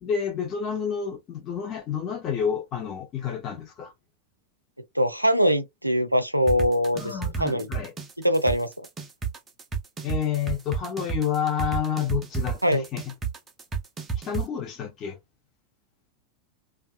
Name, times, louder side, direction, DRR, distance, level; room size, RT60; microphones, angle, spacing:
voice 1, 0.0-3.9 6.9-7.9 10.0-13.1 14.2-15.2, left 8 dB, 30° left, 0.8 m, -29 dB
voice 2, 5.0-7.1 7.4-7.7 8.2-8.7 12.6-12.8, equal, 90° right, 0.4 m, -22 dB
sound 1, 6.5-14.4, right 6 dB, 20° right, 0.5 m, -30 dB
2.7 x 2.3 x 2.3 m
figure-of-eight pair, 90°, 0 cm